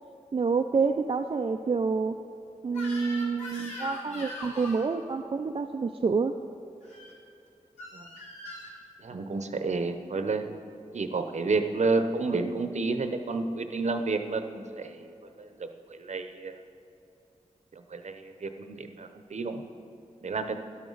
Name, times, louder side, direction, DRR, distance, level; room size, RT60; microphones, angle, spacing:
voice 1, 0.3-2.2 2.6-6.4, right 4 dB, 40° right, 5 dB, 0.4 m, -28 dB
Crying sobbing / Screech, 2.7-4.9 6.8-7.1 7.8-8.8, left 2 dB, 55° left, 2.5 m, -41 dB
voice 2, 9.0-10.4 10.9-16.6 17.8-19.6 20.2-20.6, right 3 dB, 60° right, 7 dB, 0.7 m, -30 dB
12.5 x 11.5 x 3.9 m, 2.7 s
wide cardioid pair, 110°, 13 cm